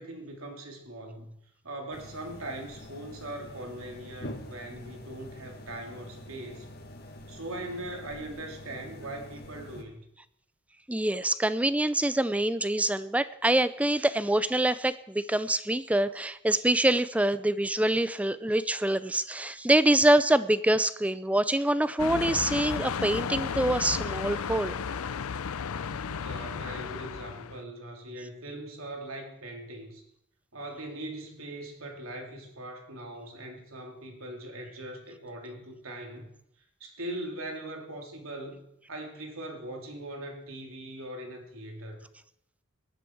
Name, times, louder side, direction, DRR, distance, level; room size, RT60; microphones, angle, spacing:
voice 1, 0.0-1.4 1.6-6.7 7.3-10.0 26.0-30.0 30.5-36.3 36.8-42.0, right 1 dB, 75° right, 2 dB, 3.0 m, -40 dB
sound 1, 1.9-9.8, left 1 dB, 50° left, 1.9 m, -45 dB
voice 2, 10.9-24.8, right 1 dB, 5° right, 15 dB, 0.5 m, -25 dB
sound 2, 22.0-27.6, left 6 dB, 90° left, 0.5 m, -33 dB
19.0 x 11.5 x 4.6 m, 0.76 s
head